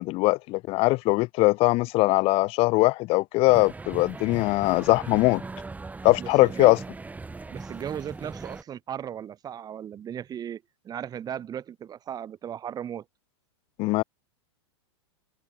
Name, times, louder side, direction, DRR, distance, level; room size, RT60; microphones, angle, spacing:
voice 1, 0.0-5.4 6.0-6.8 13.8-14.0, left 22 dB, 40° left, 1.3 m, -21 dB
sound 1, 3.5-8.6, right 3 dB, 10° right, 5.7 m, -39 dB
voice 2, 6.2-6.8 7.5-13.0, right 9 dB, 25° right, 4.4 m, -36 dB
hypercardioid pair, 110°, 15 cm